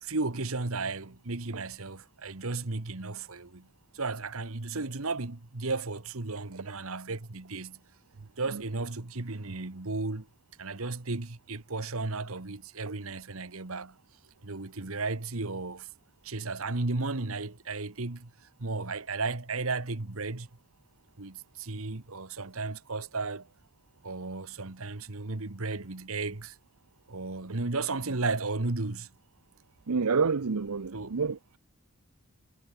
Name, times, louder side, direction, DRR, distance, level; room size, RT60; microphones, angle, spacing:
voice 1, 0.0-3.7 3.9-7.8 8.4-10.3 10.6-13.9 14.4-15.9 16.2-18.3 18.6-20.5 21.2-23.5 24.0-26.6 27.1-29.1 30.9-31.1, right 3 dB, 70° right, 1.5 m, -34 dB
voice 2, 29.9-31.4, right 5 dB, 90° right, 0.7 m, -28 dB
head